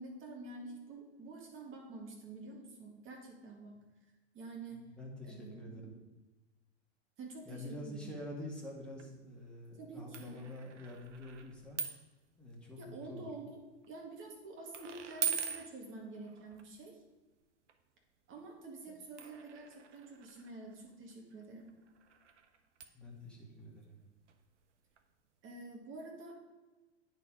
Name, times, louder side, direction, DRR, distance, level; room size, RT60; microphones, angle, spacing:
voice 1, 0.0-3.7 4.3-4.9 5.2-6.0 7.2-8.0 9.8-10.4 12.8-13.6 13.9-17.0 18.3-21.7 25.4-26.3, right 3 dB, 35° right, 1 dB, 2.1 m, -48 dB
voice 2, 4.7-6.0 7.5-11.8 12.4-13.3 22.9-24.0, left 1 dB, 5° left, -3 dB, 2.1 m, -47 dB
sound 1, 8.6-8.7 8.9-9.1 10.1-12.2 12.5-12.9 13.5-13.9 14.7-16.7 17.7-17.8 19.2-24.7 25.0-25.1 25.4-25.5, right 7 dB, 80° right, 0.8 m, -43 dB
9.4 x 4.5 x 5.0 m, 1.2 s
hypercardioid pair, 95°, 35 cm